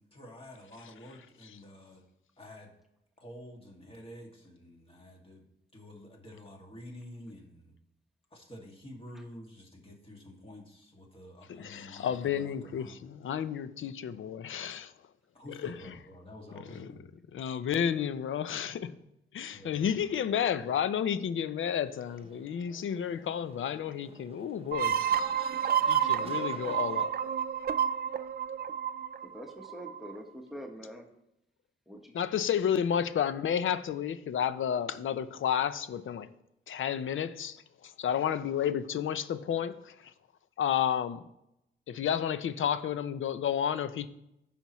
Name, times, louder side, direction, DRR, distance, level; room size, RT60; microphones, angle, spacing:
voice 1, 0.0-2.0 2.4-2.7 3.2-5.4 5.7-7.7 8.3-13.0 15.3-17.1 19.5-20.0, left 1 dB, 25° left, 2.1 m, -49 dB
voice 2, 11.5-14.9 15.6-15.7 17.3-19.0 19.3-25.0 25.9-27.3 32.1-36.3 36.7-39.9 40.6-41.2 41.9-44.1, left 8 dB, 75° left, 0.6 m, -31 dB
sound 1, 21.6-27.0, right 3 dB, 30° right, 0.9 m, -50 dB
sound 2, 24.7-30.2, right 8 dB, 50° right, 0.5 m, -30 dB
voice 3, 29.2-31.1 31.9-32.2, equal, ahead, 1.2 m, -44 dB
15.0 x 5.9 x 3.1 m
wide cardioid pair, 105°, 21 cm